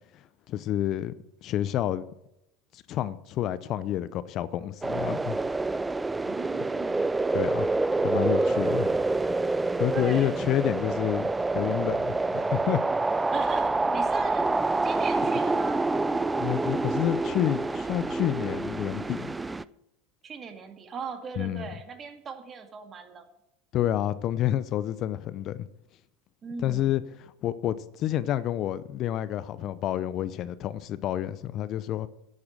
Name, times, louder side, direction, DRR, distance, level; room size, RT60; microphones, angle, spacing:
voice 1, 0.5-1.1 1.4-2.0 2.7-5.4 7.3-7.7 8.0-8.9 9.8-11.3 11.5-12.8 16.4-19.3 21.4-21.7 23.7-25.7 26.6-32.1, left 12 dB, 50° left, 0.6 m, -29 dB
sound 1, 4.8-19.6, right 3 dB, 15° right, 0.4 m, -27 dB
voice 2, 6.2-7.4 8.0-9.2 9.9-10.4 13.3-14.6 14.8-15.9 20.2-23.3 26.4-26.9, right 5 dB, 35° right, 2.2 m, -40 dB
10.5 x 8.6 x 7.3 m
hypercardioid pair, 85°, 0 cm